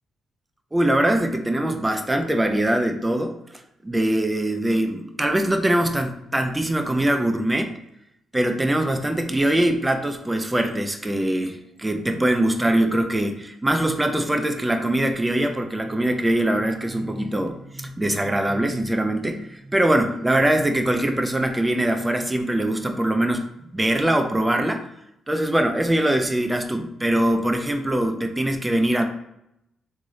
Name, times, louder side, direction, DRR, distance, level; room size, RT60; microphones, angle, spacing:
voice 1, 0.7-3.4 3.8-7.8 8.3-23.5 23.7-24.9 25.3-29.0, right 1 dB, 10° right, 6 dB, 0.6 m, -22 dB
3.6 x 3.2 x 4.0 m, 0.81 s
cardioid pair, 115°, 0 cm